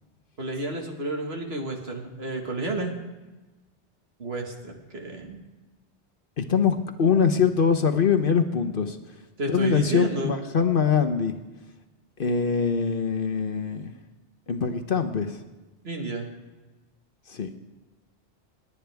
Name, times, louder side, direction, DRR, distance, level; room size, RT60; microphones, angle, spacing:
voice 1, 0.4-2.9 4.2-5.4 9.4-10.3 15.8-16.3, right 2 dB, 60° right, 2 dB, 2.0 m, -31 dB
voice 2, 6.4-9.0 9.5-11.4 12.2-13.9 14.5-15.4 17.3-17.6, left 6 dB, 55° left, 8 dB, 1.0 m, -23 dB
29.0 x 9.7 x 3.5 m, 1.2 s
omnidirectional pair, 1.2 m